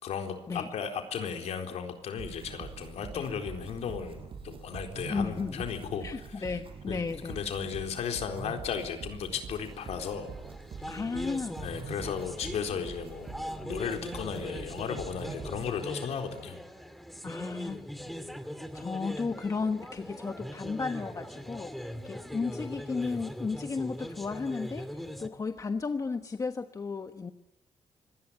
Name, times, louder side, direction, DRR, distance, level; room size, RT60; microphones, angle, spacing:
voice 1, 0.0-6.0 6.9-10.3 10.8-10.9 11.6-13.4 13.6-16.6, left 7 dB, 85° left, 5 dB, 4.1 m, -35 dB
sound 1, 2.2-15.8, right 6 dB, 55° right, 6.1 m, -44 dB
voice 2, 5.1-5.6 6.0-7.4 10.9-11.7 17.2-17.9 18.7-27.3, left 4 dB, 30° left, 8 dB, 1.2 m, -34 dB
sound 2, 9.7-25.3, equal, ahead, 2.1 m, -41 dB
25.5 x 19.0 x 9.9 m, 0.97 s
cardioid pair, 130°, 11 cm